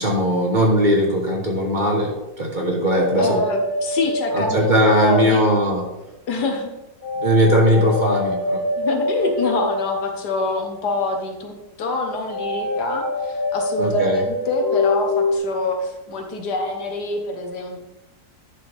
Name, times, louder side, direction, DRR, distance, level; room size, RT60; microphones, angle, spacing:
voice 1, 0.0-3.4 4.3-5.8 7.2-8.6 13.8-14.2, equal, 30° right, 0 dB, 1.3 m, -19 dB
sound 1, 3.0-5.6 7.0-10.9 12.3-15.4, left 1 dB, 10° left, 1.6 m, -25 dB
voice 2, 3.2-5.4 6.3-6.7 8.8-17.9, left 3 dB, 80° left, 4 dB, 1.7 m, -26 dB
10.0 x 6.6 x 3.4 m, 0.98 s
omnidirectional pair, 1.7 m